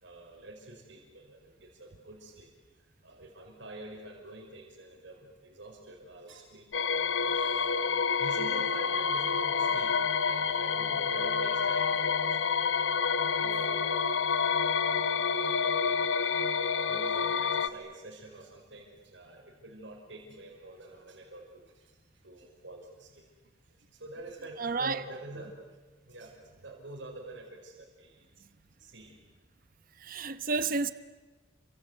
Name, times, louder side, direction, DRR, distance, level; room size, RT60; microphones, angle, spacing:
voice 1, 0.0-2.5 3.0-7.8 8.2-14.9 15.2-16.4 16.6-22.0 22.2-23.3 23.8-25.6 26.0-28.3 28.8-29.2, right 2 dB, 75° right, 5.1 m, -47 dB
sound 1, 6.7-17.7, left 6 dB, 85° left, 1.1 m, -28 dB
voice 2, 24.6-25.0 30.0-30.9, right 4 dB, 50° right, 1.0 m, -30 dB
29.0 x 25.0 x 8.1 m
head